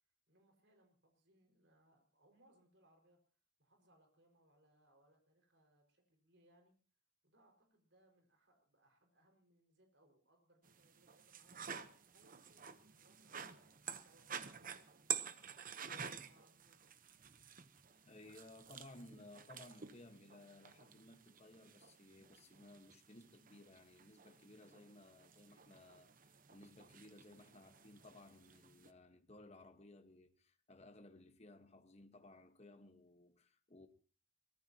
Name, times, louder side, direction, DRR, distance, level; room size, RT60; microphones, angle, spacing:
voice 1, 0.3-3.2 3.6-6.7 7.2-11.7 12.1-16.9, right 1 dB, 65° right, 5.4 m, -72 dB
sound 1, 10.6-28.9, right 8 dB, 45° right, 1.0 m, -50 dB
voice 2, 17.9-33.9, left 2 dB, 35° left, 1.4 m, -59 dB
24.0 x 19.0 x 2.9 m
head